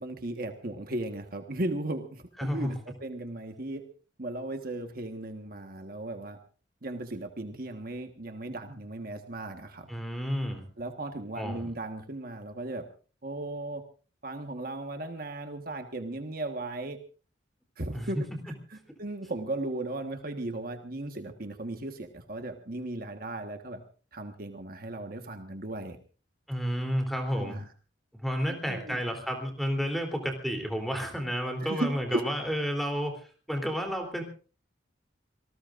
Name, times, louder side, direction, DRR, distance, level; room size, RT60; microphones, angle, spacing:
voice 1, 0.0-3.8 4.2-6.4 6.8-9.9 10.8-12.9 13.2-13.8 14.2-17.0 17.8-18.2 18.7-23.8 24.1-26.0 27.3-27.6 28.5-29.0 31.6-32.3, right 2 dB, 50° right, 5 dB, 1.5 m, -36 dB
voice 2, 2.4-2.7 9.9-10.6 11.4-11.7 17.9-18.1 26.5-27.6 28.2-34.2, equal, ahead, 3 dB, 3.4 m, -31 dB
26.5 x 19.0 x 2.6 m, 0.37 s
head